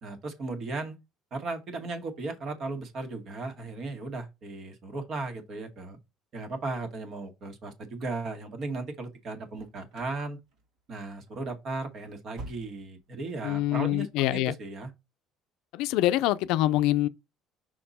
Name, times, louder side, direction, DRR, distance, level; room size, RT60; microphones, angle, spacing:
voice 1, 0.0-1.0 1.3-6.0 6.3-10.4 10.9-14.9, right 3 dB, 50° right, 1.9 m, -36 dB
sound 1, 9.5-10.2 10.5-11.0 11.3-11.4 11.8-13.1 13.4-13.5 14.0-14.1, right 2 dB, 70° right, 2.4 m, -47 dB
voice 2, 13.4-14.5 15.7-17.1, left 15 dB, 80° left, 0.5 m, -25 dB
6.0 x 4.4 x 4.2 m
cardioid pair, 115°, 0 cm